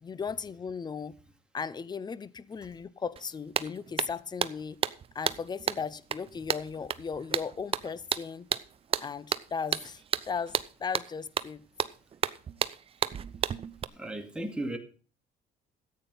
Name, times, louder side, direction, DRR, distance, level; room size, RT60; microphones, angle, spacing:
voice 1, 0.0-1.2 1.5-4.8 5.1-8.5 9.0-11.7, left 6 dB, 25° left, 0.7 m, -36 dB
sound 1, 3.2-3.3 3.5-13.8, right 8 dB, 35° right, 0.6 m, -32 dB
voice 2, 13.9-14.8, right 1 dB, 5° right, 2.5 m, -35 dB
13.5 x 8.7 x 5.5 m
cardioid pair, 110°, 17 cm